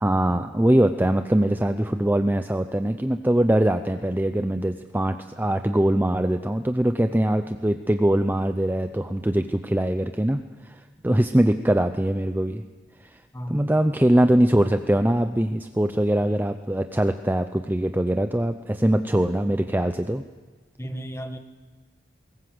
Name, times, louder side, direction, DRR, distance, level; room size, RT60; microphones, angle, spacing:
voice 1, 0.0-12.6 13.5-20.2, right 1 dB, 10° right, 8 dB, 0.6 m, -22 dB
voice 2, 13.3-13.8 20.8-21.4, equal, 15° left, 7 dB, 1.6 m, -34 dB
21.5 x 18.5 x 7.8 m, 1.3 s
head